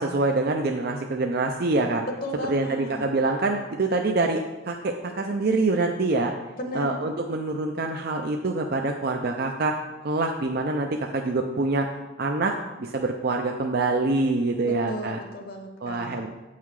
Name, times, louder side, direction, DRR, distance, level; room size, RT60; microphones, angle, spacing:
voice 1, 0.0-2.0 2.5-6.3 6.7-9.7 10.0-11.9 12.2-15.2 15.8-16.3, right 3 dB, 50° right, 3 dB, 0.5 m, -25 dB
voice 2, 2.0-3.0 6.5-6.9 14.6-16.2, equal, 45° left, 4 dB, 1.1 m, -35 dB
8.3 x 5.7 x 4.7 m, 1.2 s
head